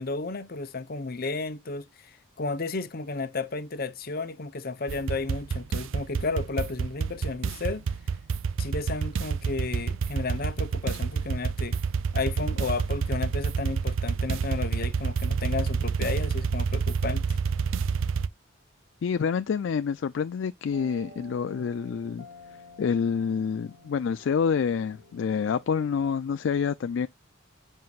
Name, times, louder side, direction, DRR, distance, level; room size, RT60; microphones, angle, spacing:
voice 1, 0.0-7.8 8.6-11.8 12.1-17.4, left 3 dB, 50° left, 0.8 m, -33 dB
sound 1, 4.9-18.3, right 5 dB, 75° right, 0.4 m, -28 dB
voice 2, 19.0-22.3 22.8-27.1, left 6 dB, 65° left, 0.3 m, -27 dB
sound 2, 20.7-25.9, left 1 dB, 50° right, 2.2 m, -51 dB
7.6 x 5.4 x 2.4 m
head